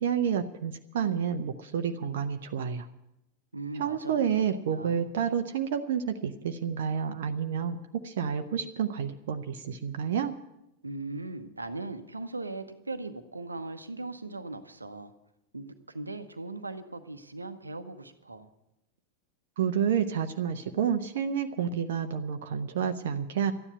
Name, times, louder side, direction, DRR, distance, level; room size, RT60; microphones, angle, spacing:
voice 1, 0.0-2.9 3.8-7.8 8.0-10.4 19.6-23.5, right 8 dB, 55° right, 0.8 m, -29 dB
voice 2, 3.5-5.0 10.8-15.1 15.5-18.5, right 2 dB, 80° right, 1.0 m, -39 dB
13.5 x 9.9 x 8.1 m
figure-of-eight pair, 90°, 0 cm